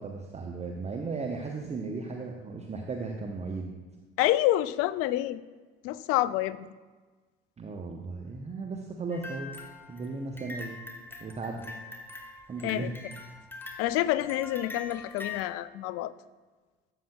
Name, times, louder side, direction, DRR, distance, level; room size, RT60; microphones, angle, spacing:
voice 1, 0.0-3.7 7.6-9.5 9.9-10.8 11.2-11.7 12.5-13.0, right 3 dB, 20° right, 2 dB, 0.7 m, -36 dB
voice 2, 4.2-5.4 5.8-6.6 12.6-12.9 13.8-16.1, left 14 dB, 45° left, 16 dB, 0.4 m, -27 dB
sound 1, 9.1-15.5, left 3 dB, 5° left, 1.0 m, -43 dB
12.5 x 7.3 x 2.3 m, 1.3 s
figure-of-eight pair, 55°, 32 cm